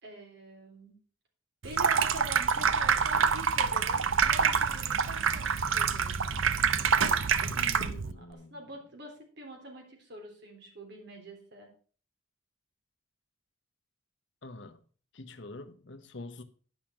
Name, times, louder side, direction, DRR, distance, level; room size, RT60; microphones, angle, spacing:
voice 1, 0.0-1.0 1.6-6.2 8.1-11.7, right 2 dB, 60° right, 3.6 m, -45 dB
Water tap faucet / Sink (filling or washing), 1.6-8.1, right 6 dB, 90° right, 0.8 m, -26 dB
voice 2, 7.5-8.5 14.4-14.8 15.1-16.4, left 2 dB, 65° left, 1.0 m, -45 dB
10.5 x 6.0 x 6.1 m
head